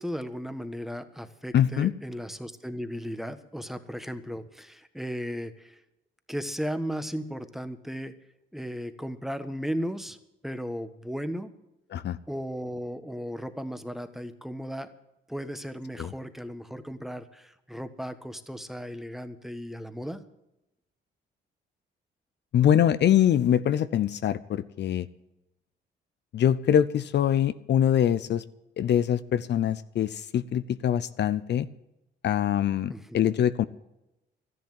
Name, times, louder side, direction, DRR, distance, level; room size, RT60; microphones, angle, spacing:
voice 1, 0.0-5.8 6.3-8.1 8.5-10.2 10.4-11.5 12.3-14.9 15.3-20.2 32.9-33.0, equal, ahead, 10 dB, 1.3 m, -35 dB
voice 2, 1.5-1.9 11.9-12.2 16.0-16.1 22.5-25.1 26.3-28.4 28.8-31.7 32.2-33.6, left 10 dB, 60° left, 14 dB, 0.7 m, -24 dB
13.0 x 11.0 x 7.7 m, 0.89 s
cardioid pair, 90°, 20 cm